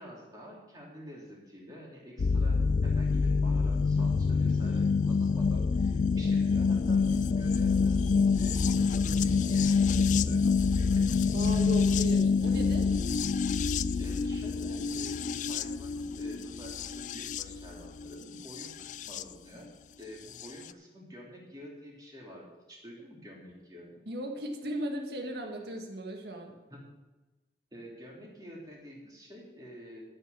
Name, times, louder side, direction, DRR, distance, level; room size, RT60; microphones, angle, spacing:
voice 1, 0.0-11.1 13.9-19.7 20.0-24.0 26.7-26.9 27.7-30.0, equal, 20° right, -4 dB, 3.2 m, -48 dB
sound 1, 2.2-19.2 20.4-20.5, left 5 dB, 45° left, 0.3 m, -27 dB
voice 2, 11.3-12.9 24.1-26.5, right 1 dB, 65° right, 2 dB, 1.9 m, -36 dB
13.0 x 6.7 x 6.7 m, 1.1 s
head